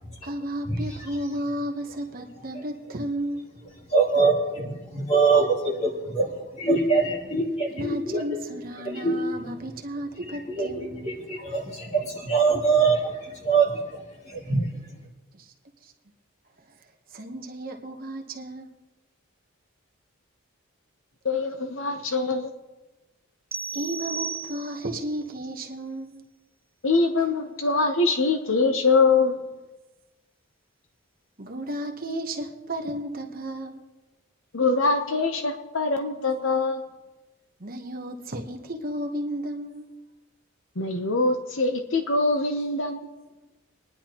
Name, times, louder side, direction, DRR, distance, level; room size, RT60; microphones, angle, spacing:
voice 1, 0.2-3.5 7.7-11.2 15.3-15.5 15.8-15.9 16.7-16.8 17.1-18.7 23.7-26.3 27.2-27.4 31.4-33.9 37.6-39.9, right 1 dB, 40° right, 3 dB, 1.0 m, -33 dB
voice 2, 3.9-8.2 8.8-9.2 10.3-14.0 14.3-14.7, right 4 dB, 30° left, -2 dB, 2.7 m, -24 dB
voice 3, 21.2-22.5 26.8-29.4 34.5-36.8 40.8-43.1, left 3 dB, 60° left, 6 dB, 0.9 m, -23 dB
sound 1, 23.5-25.0, right 6 dB, 10° right, 0.3 m, -34 dB
26.0 x 10.5 x 3.0 m, 1.1 s
head